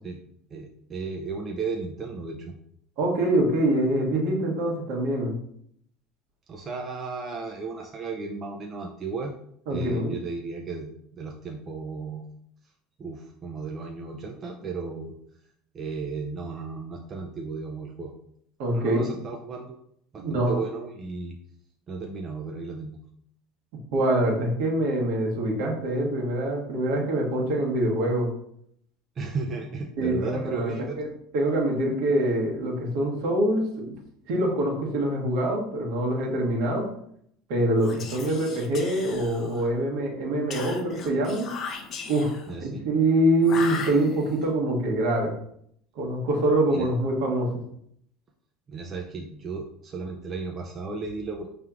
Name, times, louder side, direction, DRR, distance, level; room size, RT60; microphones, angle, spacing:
voice 1, 0.5-2.6 6.5-9.3 9.7-12.2 13.0-15.1 15.7-18.1 18.7-19.8 20.1-21.4 21.9-23.0 29.2-31.0 42.5-42.9 46.7-46.9 48.7-51.5, right 4 dB, 35° right, 1 dB, 0.6 m, -34 dB
voice 2, 3.0-5.3 9.7-10.1 18.6-19.1 20.2-20.6 23.9-28.3 30.0-31.1 31.3-33.9 34.3-36.8 37.5-41.5 42.1-42.3 42.6-45.3 45.9-47.5, right 1 dB, 65° right, -1 dB, 1.4 m, -24 dB
Whispering, 37.8-39.8 40.5-42.5 43.4-44.5, left 5 dB, 45° left, 0.7 m, -37 dB
5.4 x 3.3 x 2.4 m, 0.68 s
hypercardioid pair, 75°, 0 cm